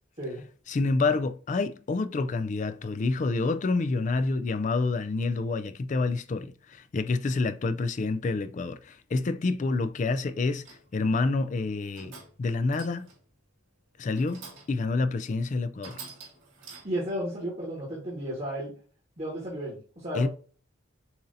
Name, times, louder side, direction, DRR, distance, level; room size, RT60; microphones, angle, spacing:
voice 1, 0.7-10.7 10.9-12.1 12.4-13.1 14.0-16.0 20.1-20.3, left 3 dB, 40° left, 0.3 m, -28 dB
sound 1, 10.6-11.0 11.7-12.4 12.7-13.3 14.1-14.8 15.3-15.4 15.8-17.1, right 4 dB, 70° right, 1.7 m, -47 dB
voice 2, 16.8-18.7 19.2-20.3, right 1 dB, 35° right, 1.5 m, -33 dB
7.0 x 2.7 x 2.6 m
head